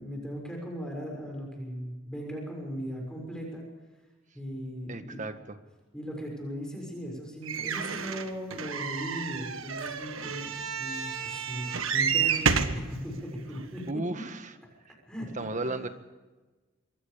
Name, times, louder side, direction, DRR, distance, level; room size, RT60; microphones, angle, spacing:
voice 1, 0.0-3.6 4.3-5.2 5.9-13.8 15.1-15.9, equal, 5° left, 0 dB, 6.5 m, -38 dB
voice 2, 4.9-5.6 13.9-14.5 14.8-15.0 15.3-15.9, right 2 dB, 40° right, 9 dB, 1.6 m, -34 dB
sound 1, 7.5-12.8 13.5-13.6 13.9-14.0, right 6 dB, 90° right, 1.6 m, -30 dB
26.5 x 23.5 x 5.2 m, 1.2 s
head